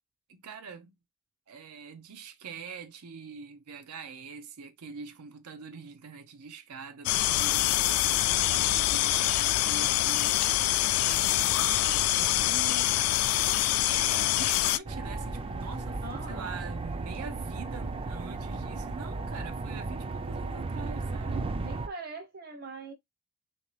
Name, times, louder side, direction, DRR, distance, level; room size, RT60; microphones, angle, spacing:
voice 1, 0.3-0.9 1.5-10.4 10.7-13.0 13.8-16.0 16.3-21.5, right 5 dB, 90° right, 0.6 m, -44 dB
sound 1, 7.1-14.8, left 14 dB, 75° left, 0.3 m, -25 dB
sound 2, 14.8-21.9, right 3 dB, 25° right, 0.3 m, -35 dB
voice 2, 16.0-16.5 21.6-22.9, right 3 dB, 45° right, 0.8 m, -42 dB
3.6 x 2.7 x 3.1 m
head